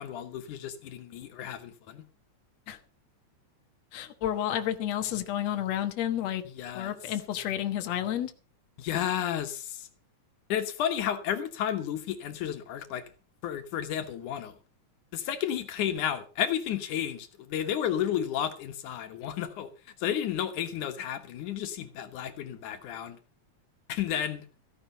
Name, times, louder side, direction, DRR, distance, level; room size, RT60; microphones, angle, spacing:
voice 1, 0.0-2.1 6.6-6.9 8.8-9.9 10.5-13.0 13.4-14.6 15.1-19.7 20.0-23.2 23.9-24.5, left 10 dB, 90° left, 2.9 m, -32 dB
voice 2, 3.9-6.4 6.7-8.3, left 11 dB, 65° left, 2.4 m, -31 dB
15.0 x 10.5 x 5.6 m
omnidirectional pair, 3.4 m